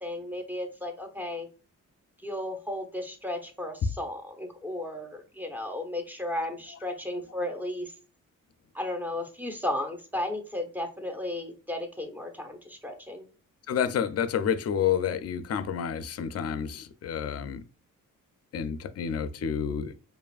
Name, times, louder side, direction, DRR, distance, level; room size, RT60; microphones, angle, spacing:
voice 1, 0.0-1.5 2.2-7.9 8.7-13.3, left 1 dB, 5° right, 0.8 m, -34 dB
voice 2, 13.7-17.6 18.5-19.9, left 8 dB, 50° left, 0.5 m, -29 dB
4.7 x 2.5 x 2.4 m
cardioid pair, 95°, 33 cm